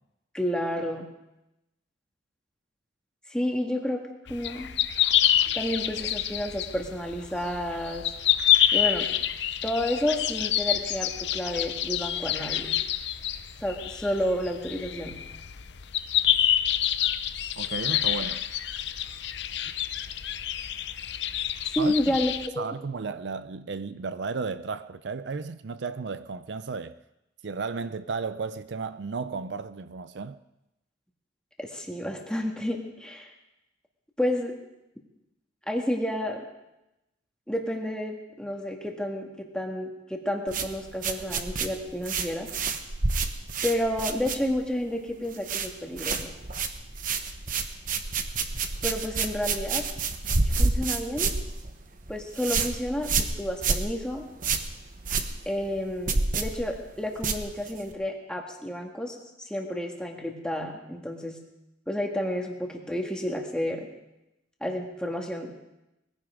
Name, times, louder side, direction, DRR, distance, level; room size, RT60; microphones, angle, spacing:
voice 1, 0.3-1.1 3.3-4.0 4.3-4.7 5.5-8.1 8.7-9.1 9.6-12.7 13.6-15.2 21.7-22.7 31.6-33.3 34.2-34.5 35.7-36.5 37.5-42.5 43.6-46.3 48.8-49.8 50.4-51.3 52.1-54.3 55.5-61.4 61.9-63.9 64.6-65.5, left 1 dB, 5° left, 1.9 m, -30 dB
sound 1, 4.3-22.5, left 11 dB, 60° left, 0.6 m, -27 dB
voice 2, 17.6-18.4 21.8-21.9 22.6-27.0 27.4-30.4, right 4 dB, 65° right, 0.5 m, -34 dB
sound 2, 40.5-44.8 45.1-45.7 46.0-57.9, right 4 dB, 45° right, 1.1 m, -29 dB
20.5 x 15.5 x 3.7 m
head